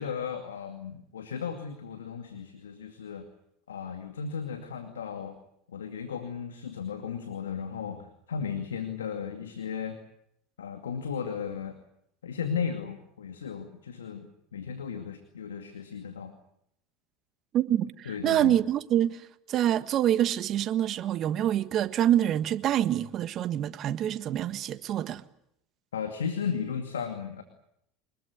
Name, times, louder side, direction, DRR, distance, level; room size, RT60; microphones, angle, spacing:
voice 1, 0.0-3.3 3.7-5.4 5.7-10.0 10.6-11.8 12.2-16.3 18.1-18.6 25.9-27.4, left 6 dB, 85° left, 2.3 m, -35 dB
voice 2, 17.5-25.2, right 11 dB, 45° right, 1.5 m, -26 dB
25.0 x 21.0 x 9.6 m
hypercardioid pair, 80°, 0 cm